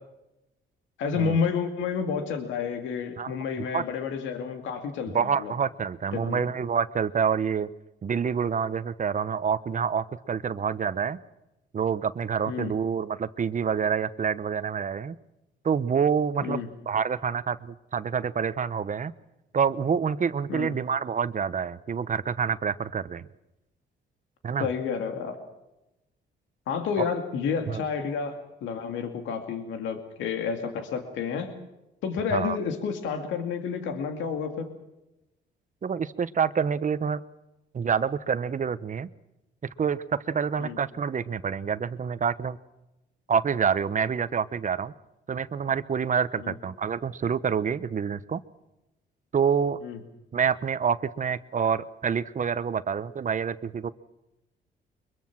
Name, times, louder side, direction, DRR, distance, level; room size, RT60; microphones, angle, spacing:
voice 1, 1.0-5.5 6.1-6.5 12.5-12.7 16.4-16.7 20.5-20.7 24.6-25.4 26.7-31.5 32.0-34.7 40.6-40.8 46.4-46.5 49.8-50.0, left 6 dB, 90° left, 5 dB, 2.4 m, -30 dB
voice 2, 3.2-3.8 5.1-7.7 8.0-11.2 11.7-15.2 15.6-19.1 19.5-23.3 24.4-24.7 27.0-27.1 27.7-27.8 32.3-32.6 35.8-37.2 37.7-39.1 39.8-42.6 43.3-44.9 45.3-48.4 49.3-49.8 50.3-53.9, right 6 dB, 40° right, 14 dB, 1.0 m, -27 dB
23.5 x 22.0 x 6.1 m, 0.94 s
cardioid pair, 85°, 19 cm